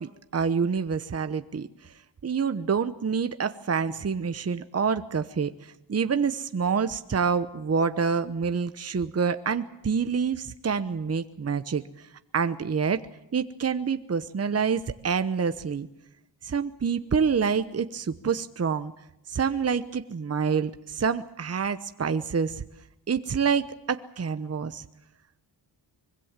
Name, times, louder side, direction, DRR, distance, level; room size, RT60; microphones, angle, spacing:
voice 1, 0.0-1.9 2.2-13.0 13.3-15.9 16.4-18.9 19.3-22.6 23.1-24.8, right 6 dB, 35° right, 10 dB, 1.0 m, -27 dB
24.5 x 22.0 x 7.5 m, 0.88 s
cardioid pair, 95°, 44 cm